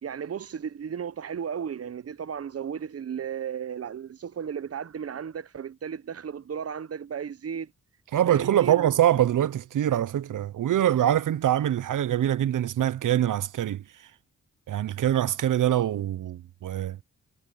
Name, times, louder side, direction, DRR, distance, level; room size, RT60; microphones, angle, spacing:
voice 1, 0.0-7.7 8.3-8.9, right 7 dB, 50° right, 0.8 m, -34 dB
voice 2, 8.1-13.8 14.7-17.0, right 11 dB, 85° right, 0.7 m, -24 dB
cardioid pair, 50°, 31 cm